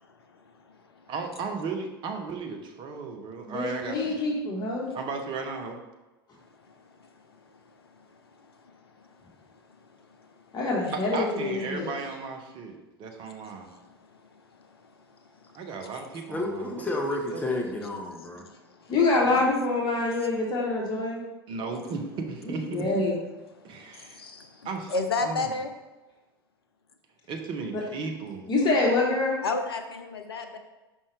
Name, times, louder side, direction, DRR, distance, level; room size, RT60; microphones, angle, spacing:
voice 1, 1.1-4.1 4.9-5.8 10.9-13.7 15.5-16.8 17.3-17.4 19.2-19.4 21.5-23.0 23.6-24.2 24.6-24.9 25.2-25.5 27.3-28.5, right 4 dB, 40° right, 3 dB, 1.0 m, -35 dB
voice 2, 3.5-4.9 10.5-11.9 18.9-21.2 22.4-23.2 27.7-27.8 28.5-29.4, left 3 dB, 35° left, -2 dB, 1.4 m, -26 dB
voice 3, 8.4-9.1 9.8-9.9 10.2-10.3 13.6-13.7 14.2-14.3 18.5-18.9 23.8-25.7 29.4-30.6, left 3 dB, 75° left, 7 dB, 0.6 m, -33 dB
voice 4, 16.3-18.4, left 2 dB, 10° left, 0 dB, 0.9 m, -31 dB
5.5 x 5.4 x 3.3 m, 1.1 s
figure-of-eight pair, 80°, 13 cm